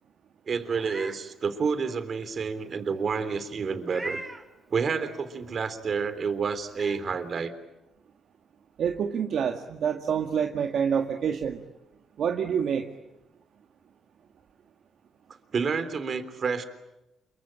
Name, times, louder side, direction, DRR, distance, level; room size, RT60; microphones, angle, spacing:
voice 1, 0.5-4.2 4.7-7.5 15.5-16.6, right 5 dB, 50° right, 11 dB, 3.5 m, -29 dB
Meow, 0.7-1.2 1.7-1.8 3.8-4.5 6.0-6.1 6.7-7.0, right 2 dB, 15° right, 4.1 m, -38 dB
voice 2, 8.8-11.6 12.2-12.8, right 7 dB, 65° right, 4 dB, 1.9 m, -27 dB
28.5 x 23.5 x 8.9 m, 0.94 s
cardioid pair, 90°, 0 cm